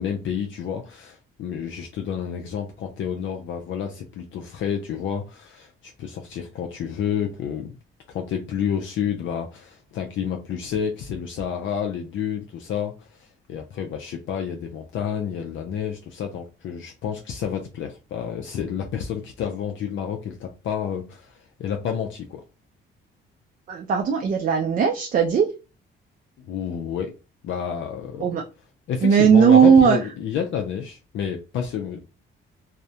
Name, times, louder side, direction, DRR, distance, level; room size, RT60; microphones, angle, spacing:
voice 1, 0.0-7.8 8.1-22.4 26.4-27.1 27.4-28.3 28.9-32.1, left 8 dB, 65° left, 0.4 m, -29 dB
voice 2, 23.7-25.5 28.2-28.4 29.0-30.0, right 7 dB, 40° right, 0.4 m, -17 dB
2.3 x 2.1 x 2.7 m
cardioid pair, 110°, 21 cm